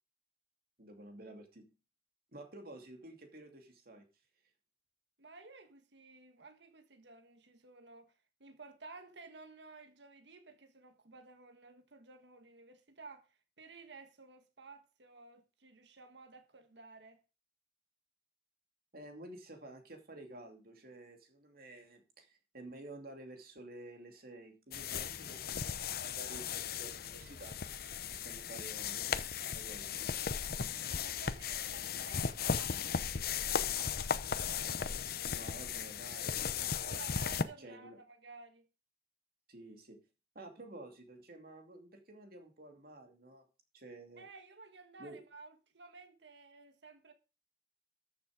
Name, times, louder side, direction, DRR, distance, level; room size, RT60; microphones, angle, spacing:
voice 1, 0.8-1.8 2.3-4.0 18.9-29.9 35.2-37.0 37.6-38.0 39.5-40.0 40.3-43.5 43.7-44.3 45.0-45.3, right 2 dB, 55° right, 2.6 m, -52 dB
voice 2, 5.2-8.1 8.4-17.2 30.7-34.0 34.5-35.4 36.2-36.4 36.8-38.7 44.2-47.1, right 4 dB, 80° right, 1.5 m, -55 dB
sound 1, 24.7-37.4, left 7 dB, 60° left, 0.8 m, -36 dB
13.5 x 7.1 x 5.1 m
head